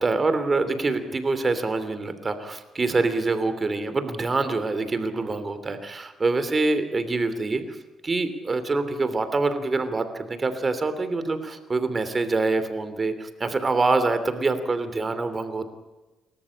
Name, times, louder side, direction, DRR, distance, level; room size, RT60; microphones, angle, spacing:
voice 1, 0.0-7.6 8.0-15.6, right 3 dB, 30° right, 10 dB, 3.0 m, -25 dB
30.0 x 14.0 x 8.6 m, 1.1 s
cardioid pair, 90°, 0 cm